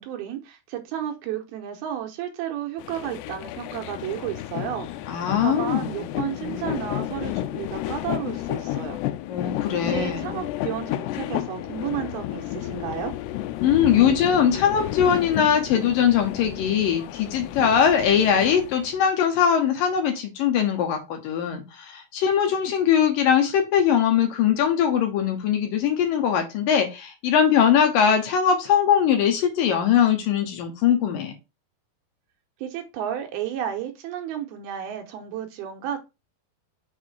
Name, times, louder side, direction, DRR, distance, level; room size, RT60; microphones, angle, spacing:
voice 1, 0.0-4.9 5.4-9.0 9.7-13.2 32.6-36.0, right 10 dB, 75° right, 2.7 m, -32 dB
sound 1, 2.8-19.0, left 14 dB, 85° left, 2.7 m, -32 dB
voice 2, 5.1-6.1 9.3-10.4 13.6-31.3, left 8 dB, 70° left, 2.4 m, -21 dB
6.3 x 4.8 x 4.6 m
omnidirectional pair, 4.7 m